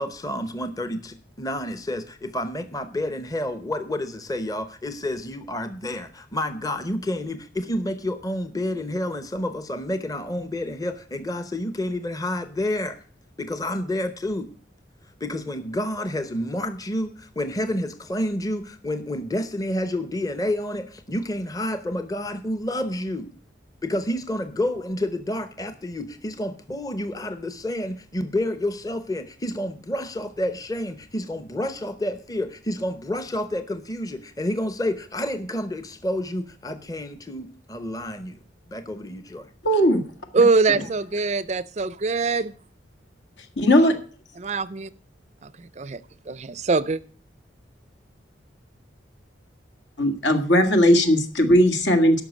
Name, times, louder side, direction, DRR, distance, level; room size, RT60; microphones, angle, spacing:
voice 1, 0.0-13.0 13.4-14.5 15.2-23.3 23.8-38.4 38.7-39.5, left 1 dB, 20° left, 0.7 m, -29 dB
voice 2, 39.6-40.0 43.6-44.0 50.0-52.2, equal, 70° left, 1.9 m, -18 dB
voice 3, 40.3-42.5 44.4-44.9 45.4-46.0 46.3-47.0, right 4 dB, 35° right, 0.4 m, -23 dB
13.0 x 5.8 x 8.3 m
head